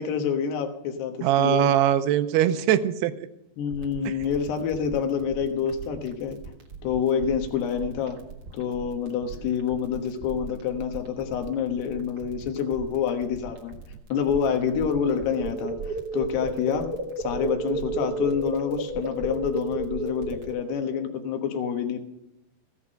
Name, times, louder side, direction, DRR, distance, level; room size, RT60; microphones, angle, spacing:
voice 1, 0.0-1.7 3.6-6.4 6.8-8.2 8.5-13.7 14.1-16.9 17.2-22.0, left 7 dB, 80° left, 5 dB, 3.4 m, -27 dB
voice 2, 1.2-3.3 4.1-4.2, right 10 dB, 80° right, 12 dB, 2.7 m, -22 dB
sound 1, 3.7-20.5, right 6 dB, 50° right, 1.9 m, -41 dB
sound 2, 14.7-21.1, right 2 dB, 65° right, 3.4 m, -32 dB
15.5 x 8.2 x 6.4 m, 0.89 s
omnidirectional pair, 4.7 m